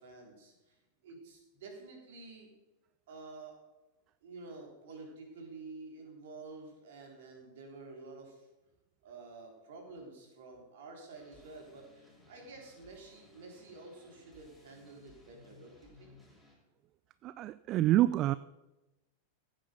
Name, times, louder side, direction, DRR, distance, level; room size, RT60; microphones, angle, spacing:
voice 1, 0.0-2.5 3.1-3.6 4.2-8.5 9.0-16.1, right 3 dB, 55° right, 1 dB, 3.6 m, -50 dB
sound 1, 11.1-16.6, left 2 dB, ahead, 5.2 m, -61 dB
voice 2, 17.2-18.3, right 14 dB, 35° right, 17 dB, 0.3 m, -27 dB
15.0 x 8.9 x 5.2 m, 1.0 s
figure-of-eight pair, 90°, 0 cm